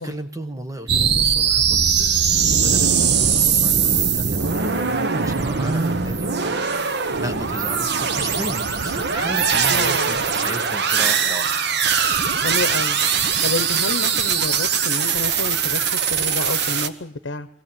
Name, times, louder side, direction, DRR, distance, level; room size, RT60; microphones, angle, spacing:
voice 1, 0.0-11.5, right 1 dB, 20° right, 7 dB, 1.4 m, -34 dB
sound 1, 0.9-16.9, right 6 dB, 65° right, 1.0 m, -21 dB
voice 2, 9.7-10.1 12.4-13.0 13.4-17.5, left 3 dB, 85° left, 14 dB, 0.8 m, -29 dB
22.5 x 15.0 x 9.0 m, 0.79 s
head